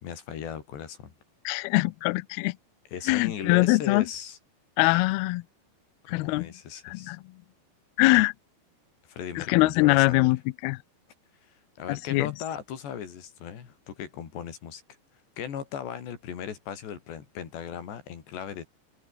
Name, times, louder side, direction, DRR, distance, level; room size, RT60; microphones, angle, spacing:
voice 1, 0.0-1.1 2.9-4.4 6.1-7.2 9.1-10.3 11.5-14.8 15.4-18.6, left 8 dB, 65° left, 5.5 m, -37 dB
voice 2, 1.5-2.6 3.1-4.0 4.8-5.4 6.1-6.5 6.9-7.2 8.0-8.3 9.4-10.4 10.6-10.8 11.9-12.3, left 22 dB, 90° left, 2.2 m, -22 dB
omnidirectional pair, 5.3 m